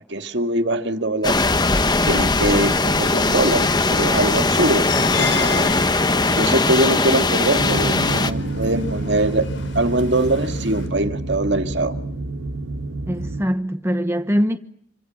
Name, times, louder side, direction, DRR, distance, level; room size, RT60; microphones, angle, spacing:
voice 1, 0.0-1.4 2.1-5.8 6.4-12.0, right 2 dB, 60° right, 2.0 m, -22 dB
sound 1, 1.2-8.3, left 3 dB, 20° left, 1.0 m, -19 dB
sound 2, 4.9-10.9, left 5 dB, 70° left, 5.6 m, -34 dB
sound 3, 7.6-13.4, right 2 dB, 90° right, 1.7 m, -28 dB
voice 2, 13.1-14.6, equal, 15° right, 1.1 m, -22 dB
26.5 x 25.0 x 7.7 m
head